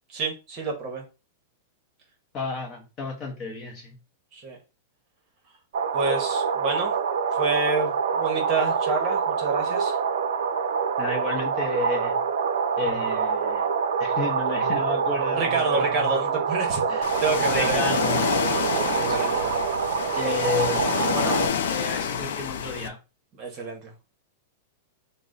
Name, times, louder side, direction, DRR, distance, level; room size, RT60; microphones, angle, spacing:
voice 1, 0.1-1.0 4.3-4.6 5.9-6.9 7.3-10.0 15.3-17.9 18.8-19.5 19.9-20.0 23.4-24.0, right 4 dB, 25° right, 1.0 m, -28 dB
voice 2, 2.3-4.0 11.0-12.2 12.8-13.7 14.0-16.1 16.9-17.0 17.3-18.3 19.0-19.2 20.0-23.0, left 4 dB, 20° left, 0.8 m, -32 dB
sound 1, 5.7-21.5, right 6 dB, 90° right, 0.5 m, -26 dB
Ocean, 17.0-22.9, left 7 dB, 70° left, 0.4 m, -28 dB
3.8 x 2.1 x 3.8 m
supercardioid pair, 175°, 0 cm